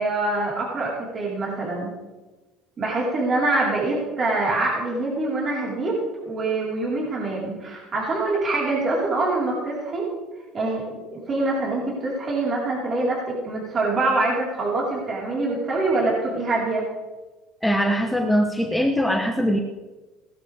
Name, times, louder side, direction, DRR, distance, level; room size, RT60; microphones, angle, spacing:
voice 1, 0.0-1.9 2.8-6.0 6.2-10.0 10.5-10.8 11.1-16.8, right 2 dB, 35° right, -4 dB, 4.5 m, -24 dB
voice 2, 17.6-19.6, equal, ahead, 2 dB, 1.1 m, -21 dB
17.0 x 12.0 x 3.6 m, 1.2 s
cardioid pair, 130°, 0 cm